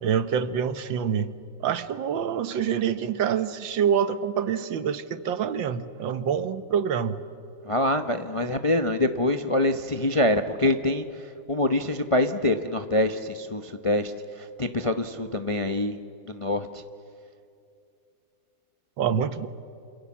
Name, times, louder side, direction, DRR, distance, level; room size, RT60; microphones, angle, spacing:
voice 1, 0.0-1.3 1.6-7.2 19.0-19.5, right 8 dB, 75° right, 12 dB, 1.7 m, -26 dB
voice 2, 7.6-11.0 11.5-14.1 14.4-16.0 16.3-16.8, left 1 dB, 30° left, 7 dB, 0.5 m, -25 dB
28.0 x 27.0 x 7.4 m, 2.6 s
omnidirectional pair, 2.1 m